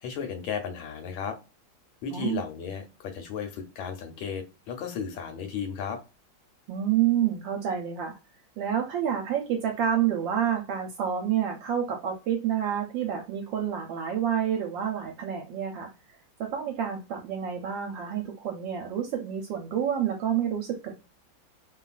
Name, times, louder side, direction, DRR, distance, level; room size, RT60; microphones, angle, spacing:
voice 1, 0.0-1.4 2.0-6.0, left 7 dB, 90° left, 5 dB, 1.5 m, -34 dB
voice 2, 2.1-2.4 6.7-8.2 8.6-15.9 16.4-20.9, right 9 dB, 75° right, 2 dB, 1.2 m, -28 dB
3.2 x 2.3 x 2.3 m, 0.29 s
omnidirectional pair, 2.2 m